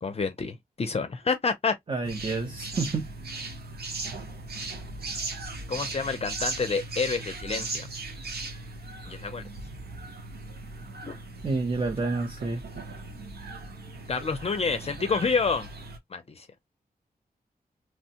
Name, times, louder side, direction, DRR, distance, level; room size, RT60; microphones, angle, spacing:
voice 1, 0.0-1.7 5.7-7.9 9.1-9.5 11.0-11.1 14.1-15.7 16.1-16.5, left 4 dB, 40° left, 0.5 m, -28 dB
voice 2, 1.9-3.1 11.4-12.6, right 3 dB, 30° right, 0.6 m, -29 dB
sound 1, 2.0-16.0, right 3 dB, 85° right, 0.8 m, -38 dB
3.1 x 2.1 x 2.7 m
wide cardioid pair, 115°, 16 cm